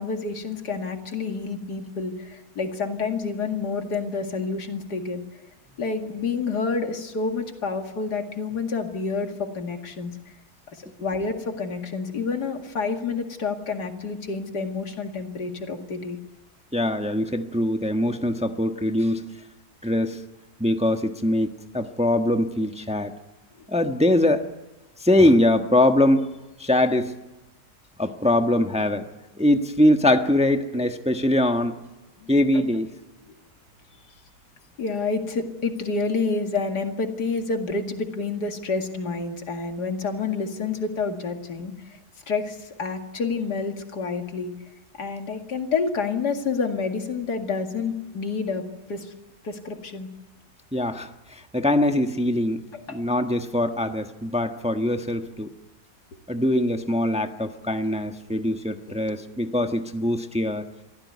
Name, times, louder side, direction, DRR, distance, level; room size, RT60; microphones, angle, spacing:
voice 1, 0.0-5.2 5.8-10.2 10.7-16.2 32.2-32.6 34.8-42.0 42.3-44.5 45.0-48.6 48.9-49.1 49.4-50.1 52.7-53.0 59.1-59.2, left 4 dB, 90° left, 5 dB, 2.7 m, -29 dB
voice 2, 16.7-19.2 19.8-20.2 20.6-23.1 23.7-24.4 25.0-26.3 26.6-27.1 28.0-29.0 29.4-31.8 32.3-32.9 50.7-52.6 52.9-55.5 56.3-60.6, left 1 dB, 5° right, 6 dB, 1.1 m, -22 dB
24.0 x 15.5 x 9.5 m, 1.1 s
omnidirectional pair, 1.7 m